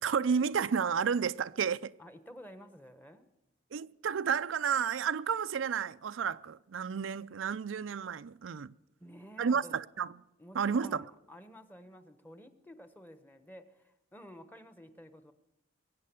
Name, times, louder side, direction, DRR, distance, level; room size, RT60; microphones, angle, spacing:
voice 1, 0.0-1.9 3.7-8.7 9.4-10.1 10.5-11.0, right 6 dB, 90° right, 0.5 m, -31 dB
voice 2, 2.0-3.3 9.0-9.7 10.4-15.3, equal, 10° left, 1.0 m, -52 dB
22.0 x 8.5 x 7.0 m
head